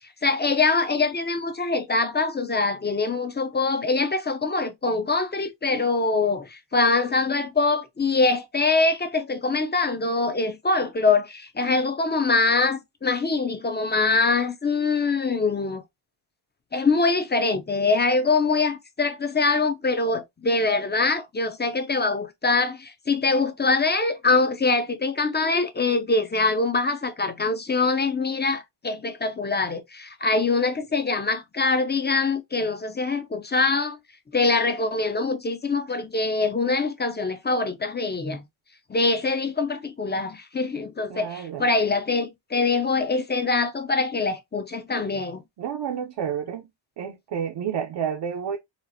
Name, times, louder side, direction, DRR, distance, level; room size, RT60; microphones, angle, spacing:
voice 1, 0.2-15.8 16.7-34.0 34.3-38.4 38.9-45.4, left 3 dB, 20° left, 0.4 m, -24 dB
voice 2, 41.1-41.7 45.6-46.7 47.0-48.6, right 8 dB, 60° right, 0.6 m, -30 dB
4.3 x 2.5 x 2.6 m
wide cardioid pair, 115°, 50 cm